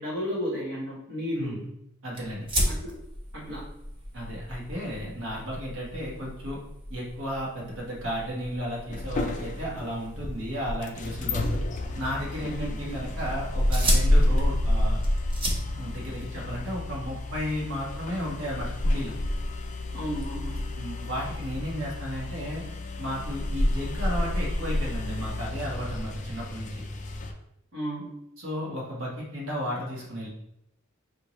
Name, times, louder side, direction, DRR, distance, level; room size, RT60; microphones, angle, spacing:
voice 1, 0.0-1.5 2.7-3.0 3.3-3.7 11.2-11.3 12.4-13.0 19.9-20.6 27.7-28.1, equal, 65° right, -7 dB, 1.2 m, -33 dB
voice 2, 1.4-1.7 2.0-2.5 4.1-6.6 6.9-11.6 11.9-15.0 15.7-19.1 20.8-22.6 23.0-26.8 28.4-30.3, equal, 85° right, -4 dB, 1.4 m, -34 dB
sound 1, 2.1-21.8, equal, 25° right, 0.8 m, -37 dB
sound 2, 8.9-27.3, left 1 dB, 40° left, 0.4 m, -29 dB
5.5 x 2.7 x 3.0 m, 0.79 s
head